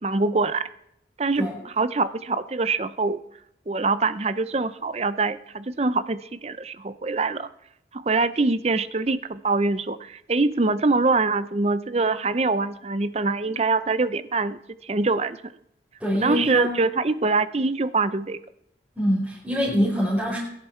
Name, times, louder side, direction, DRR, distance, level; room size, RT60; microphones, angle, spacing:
voice 1, 0.0-0.7 1.2-3.2 3.7-7.5 7.9-15.5 16.1-18.4, right 3 dB, 35° right, 14 dB, 0.6 m, -24 dB
voice 2, 16.0-16.8 19.0-20.4, equal, 5° right, -8 dB, 4.6 m, -24 dB
22.0 x 10.5 x 4.5 m, 0.77 s
head